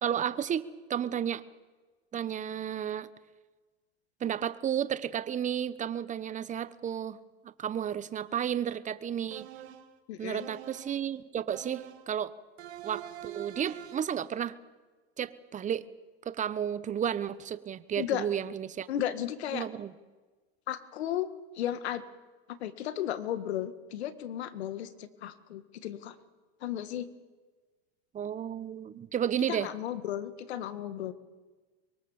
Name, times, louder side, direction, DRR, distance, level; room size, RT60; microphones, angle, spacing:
voice 1, 0.0-1.4 2.1-3.1 4.2-7.2 7.4-9.5 10.2-12.3 12.8-14.6 15.2-15.9 16.2-18.9 19.5-19.9 28.1-29.7, right 9 dB, 25° right, 15 dB, 1.1 m, -32 dB
sound 1, 9.3-10.0 10.4-11.0 11.5-12.1 12.6-14.2, right 12 dB, 80° right, 2.1 m, -45 dB
voice 2, 10.1-10.5 18.0-18.3 18.9-19.7 20.7-21.3 21.5-22.1 22.5-26.2 26.6-27.1 29.5-31.1, left 11 dB, 85° left, 12 dB, 1.9 m, -34 dB
24.5 x 23.0 x 7.2 m, 1.3 s
supercardioid pair, 125°, 32 cm